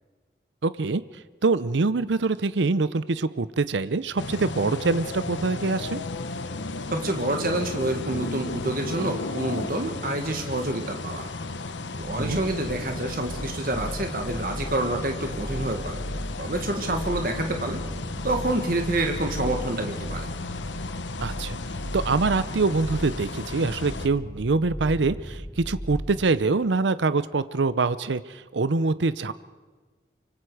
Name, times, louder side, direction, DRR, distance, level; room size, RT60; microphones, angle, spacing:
voice 1, 0.6-1.0 1.4-6.0 12.2-12.4 21.2-21.6 21.9-29.3, right 3 dB, 80° right, 15 dB, 0.6 m, -24 dB
sound 1, 4.2-24.1, left 3 dB, 80° left, 1.0 m, -34 dB
voice 2, 6.9-11.3 12.0-16.0 16.4-17.8 18.2-20.3, right 2 dB, 50° right, 4 dB, 1.7 m, -28 dB
sound 2, 12.0-26.3, equal, 10° right, 1.3 m, -37 dB
25.0 x 24.5 x 4.9 m, 1.3 s
head